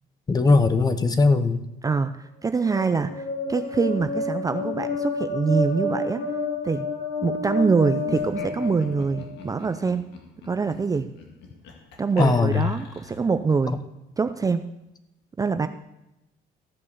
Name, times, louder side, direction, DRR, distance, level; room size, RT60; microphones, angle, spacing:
voice 1, 0.3-1.6 12.2-12.7, left 3 dB, 25° left, 11 dB, 0.9 m, -19 dB
voice 2, 1.8-6.3 6.6-6.9 7.2-10.1 10.4-11.1 12.0-13.8 14.2-14.7 15.4-15.7, right 4 dB, 20° right, 9 dB, 0.5 m, -24 dB
sound 1, 2.6-9.5, left 3 dB, 65° left, 2.9 m, -30 dB
Laughter, 8.0-13.4, left 4 dB, 80° left, 1.8 m, -42 dB
14.5 x 5.4 x 6.9 m, 0.90 s
cardioid pair, 110°, 17 cm